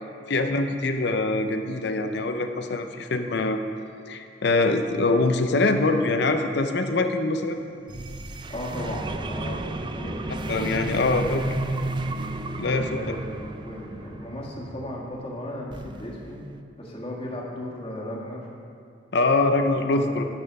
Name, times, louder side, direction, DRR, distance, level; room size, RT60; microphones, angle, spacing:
voice 1, 0.3-3.6 4.1-7.6 10.5-11.4 12.6-13.0 19.1-20.2, left 2 dB, 65° left, 6 dB, 0.6 m, -23 dB
sound 1, 7.9-15.0 15.7-16.6, right 2 dB, 25° right, 0.4 m, -33 dB
voice 2, 8.5-10.3 10.9-11.2 12.6-16.4 16.8-18.5 19.8-20.2, left 1 dB, 30° left, -3 dB, 1.7 m, -35 dB
12.5 x 6.2 x 5.3 m, 2.5 s
head